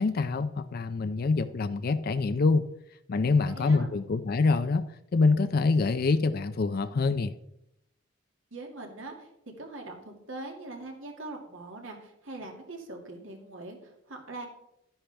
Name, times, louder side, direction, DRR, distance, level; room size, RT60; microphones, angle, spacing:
voice 1, 0.0-2.7 3.1-4.8 5.1-7.3, left 3 dB, 45° left, 11 dB, 0.4 m, -25 dB
voice 2, 3.5-3.9 8.5-9.3 9.6-14.5, right 2 dB, 70° right, 2 dB, 2.1 m, -42 dB
11.5 x 9.9 x 3.4 m, 0.79 s
head